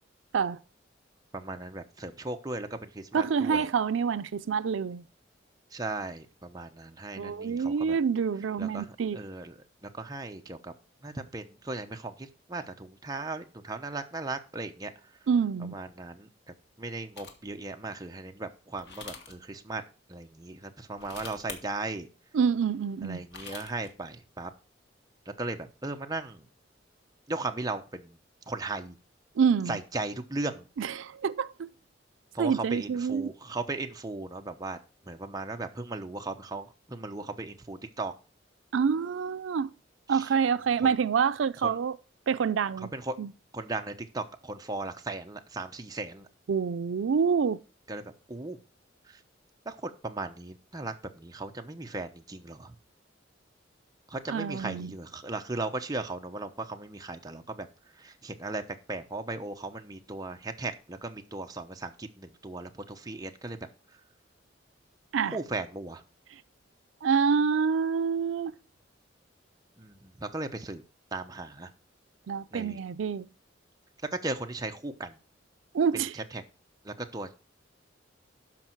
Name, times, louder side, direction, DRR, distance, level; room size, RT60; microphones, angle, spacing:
voice 1, 1.3-3.7 5.7-8.0 8.6-10.7 11.0-15.1 15.6-16.3 16.8-19.8 20.1-22.1 23.0-24.5 25.3-26.5 27.3-28.2 28.5-29.0 29.7-30.6 32.3-34.8 35.0-38.1 40.1-40.3 40.8-40.9 41.6-41.8 42.8-43.2 43.5-46.3 47.9-48.6 49.1-49.2 49.6-52.7 54.1-57.7 57.9-58.6 58.9-63.6 65.3-66.0 69.8-70.8 71.1-71.7 72.5-72.8 74.1-75.2 76.1-76.4 76.8-77.4, right 2 dB, 20° right, 0.9 m, -37 dB
voice 2, 3.1-5.0 7.2-9.2 15.3-15.8 22.3-23.2 29.4-29.7 30.8-31.7 32.4-33.3 38.7-39.7 40.1-41.9 42.3-42.9 43.2-43.3 46.5-47.6 54.3-54.9 65.1-65.4 67.0-68.5 72.3-73.3 75.7-76.1, right 6 dB, 85° right, 0.4 m, -27 dB
sound 1, 17.2-17.5 18.8-19.4 20.9-21.6 23.1-23.9, left 5 dB, 60° left, 1.6 m, -43 dB
12.0 x 5.1 x 4.5 m
head